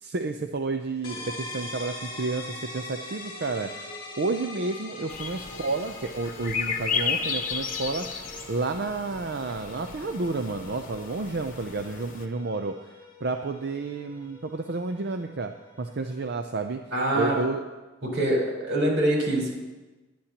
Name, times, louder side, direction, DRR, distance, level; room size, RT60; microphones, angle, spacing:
voice 1, 0.0-3.7 4.2-8.2 8.5-12.8 13.2-15.5 15.8-16.8 17.1-17.6, right 3 dB, 55° right, 6 dB, 0.6 m, -30 dB
sound 1, 1.0-16.6, left 1 dB, 25° left, 2.6 m, -43 dB
sound 2, 5.1-12.2, left 5 dB, 40° left, 1.1 m, -34 dB
voice 2, 16.9-17.4 18.0-19.5, right 1 dB, 80° right, -3 dB, 4.4 m, -24 dB
22.5 x 10.5 x 2.9 m, 1.2 s
head